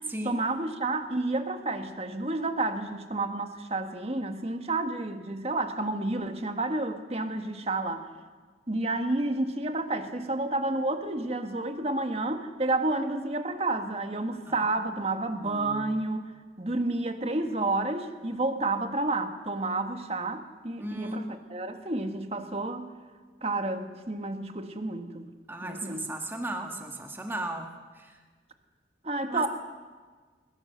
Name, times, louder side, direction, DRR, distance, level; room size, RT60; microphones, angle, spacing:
voice 1, 0.2-8.0 8.7-16.2 16.6-22.9 23.4-25.3 25.6-26.2 29.0-29.5, right 2 dB, 35° right, 7 dB, 1.5 m, -30 dB
voice 2, 15.5-15.9 20.8-21.3 25.5-27.7 29.3-29.5, right 1 dB, 10° right, 3 dB, 1.7 m, -35 dB
22.0 x 21.5 x 6.8 m, 1.5 s
head